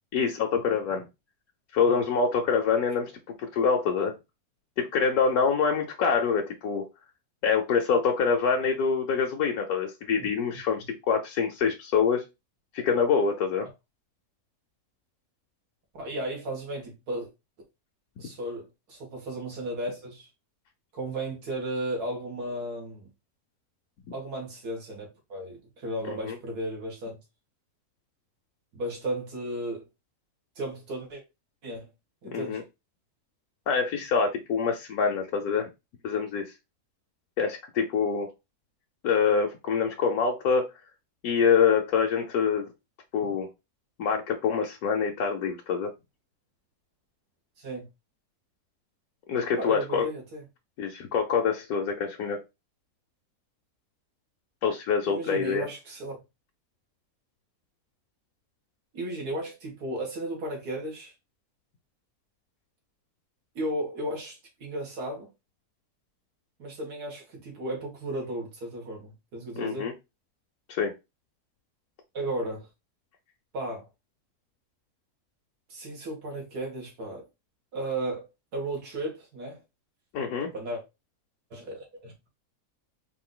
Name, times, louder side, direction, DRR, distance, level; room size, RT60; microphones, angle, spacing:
voice 1, 0.1-1.0 1.7-3.1 3.4-4.1 4.8-6.9 7.4-12.2 12.7-13.7 26.1-26.4 32.3-32.6 33.7-35.7 36.0-36.5 37.4-38.3 39.0-40.7 41.2-42.7 43.1-43.5 44.0-45.9 49.3-50.1 50.8-52.4 54.6-55.7 69.6-69.9 70.7-70.9 80.1-80.5, left 6 dB, 75° left, 1.2 m, -25 dB
voice 2, 15.9-17.3 18.2-20.3 20.9-23.1 24.1-27.2 28.7-29.9 30.6-31.2 31.6-31.9 32.2-32.6 47.6-47.9 49.6-50.4 55.0-56.2 58.9-61.1 63.6-65.3 66.6-69.9 72.1-72.7 73.5-73.9 75.7-77.3 77.7-78.3 78.5-79.6 80.5-80.8 81.5-82.3, right 1 dB, 85° right, 2.0 m, -34 dB
4.5 x 2.6 x 3.7 m
omnidirectional pair, 1.6 m